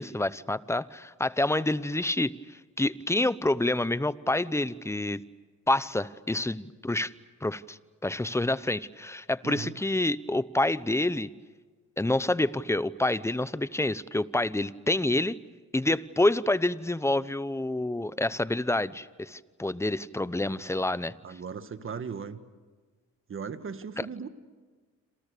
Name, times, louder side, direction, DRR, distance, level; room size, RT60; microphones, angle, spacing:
voice 1, 0.0-2.3 2.8-5.2 5.7-7.1 7.4-11.3 12.0-15.4 15.7-21.1 24.0-24.1, left 2 dB, 10° left, 17 dB, 0.8 m, -28 dB
voice 2, 9.4-9.7 20.4-20.7 21.2-22.4 23.3-24.3, right 6 dB, 45° right, 10 dB, 1.8 m, -38 dB
28.0 x 28.0 x 6.8 m, 1.4 s
cardioid pair, 90°, 30 cm